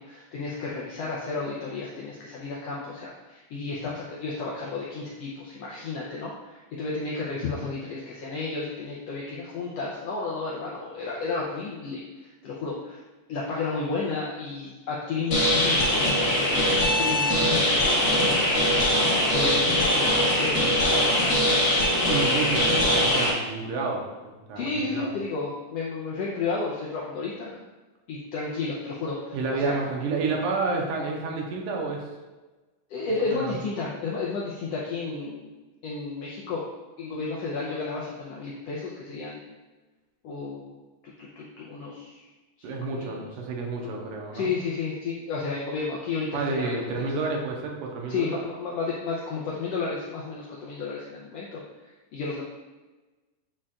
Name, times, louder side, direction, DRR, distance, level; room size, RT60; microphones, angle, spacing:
voice 1, 0.0-13.0 13.3-21.5 24.6-27.6 28.1-29.8 32.9-35.5 35.8-36.6 37.0-39.5 40.2-40.7 41.2-42.3 42.7-43.3 43.8-47.1 48.1-51.6 52.1-52.4, left 4 dB, 80° left, -4 dB, 1.5 m, -32 dB
sound 1, 15.3-23.3, left 1 dB, 65° left, 0.9 m, -22 dB
voice 2, 22.1-25.1 29.3-32.0 33.3-33.6 42.6-44.5 46.3-48.4, right 3 dB, 85° right, 0 dB, 2.4 m, -30 dB
8.7 x 4.4 x 2.4 m, 1.2 s
omnidirectional pair, 3.6 m